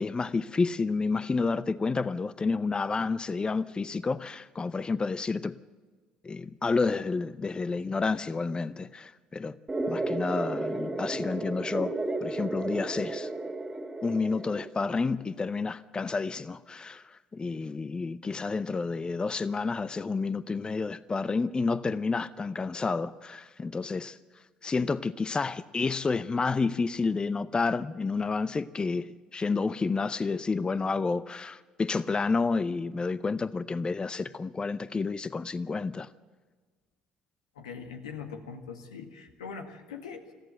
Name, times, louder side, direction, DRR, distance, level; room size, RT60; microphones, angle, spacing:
voice 1, 0.0-5.6 6.2-9.6 9.9-11.9 12.2-13.3 14.0-24.2 24.6-36.1, left 4 dB, 25° left, 0.6 m, -30 dB
sound 1, 9.7-14.7, right 2 dB, 20° right, 2.2 m, -33 dB
voice 2, 37.5-40.3, left 6 dB, 90° left, 1.8 m, -42 dB
22.0 x 14.5 x 9.0 m
hypercardioid pair, 60°, 3 cm